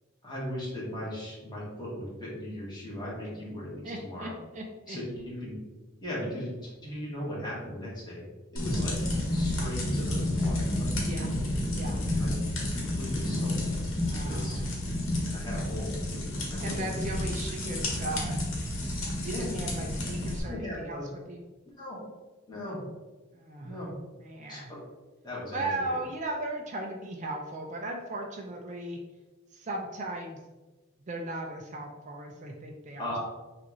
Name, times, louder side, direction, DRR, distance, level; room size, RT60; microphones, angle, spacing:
voice 1, 0.2-4.3 4.9-5.6 6.0-8.2 8.5-9.1 9.3-10.9 11.8-13.6 14.1-14.6 15.3-17.0 19.3-19.5 20.4-21.0 21.8-22.0 22.5-22.8 23.6-23.9 24.5-24.6 25.2-26.0 33.0-33.2, left 1 dB, 20° left, -6 dB, 1.4 m, -38 dB
voice 2, 3.8-5.0 11.0-11.3 11.8-12.0 14.0-14.8 16.6-18.4 19.1-21.4 23.3-23.8 24.2-24.7 25.5-29.0 29.5-30.4 31.0-33.2, right 2 dB, 35° right, 1 dB, 0.4 m, -37 dB
sound 1, 8.6-20.4, left 1 dB, 75° left, 1.3 m, -30 dB
6.0 x 2.5 x 3.0 m, 1.2 s
head